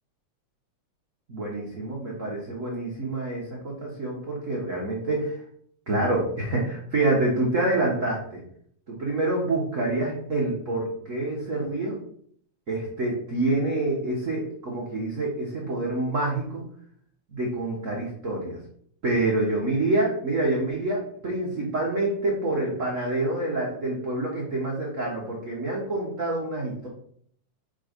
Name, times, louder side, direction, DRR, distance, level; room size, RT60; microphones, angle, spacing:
voice 1, 1.3-5.4 5.9-8.4 8.9-12.0 12.7-16.6 17.3-18.6 19.0-26.9, right 2 dB, 75° right, -3 dB, 0.7 m, -27 dB
5.3 x 3.8 x 5.1 m, 0.63 s
omnidirectional pair, 3.4 m